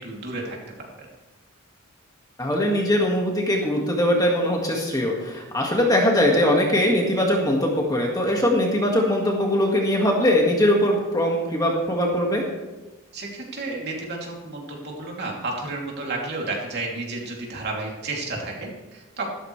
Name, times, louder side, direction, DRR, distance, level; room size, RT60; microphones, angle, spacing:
voice 1, 0.0-1.1 13.1-19.3, right 2 dB, 50° right, -2 dB, 2.9 m, -32 dB
voice 2, 2.4-12.5, left 1 dB, 15° left, -1 dB, 1.9 m, -21 dB
13.5 x 13.0 x 3.3 m, 1.1 s
head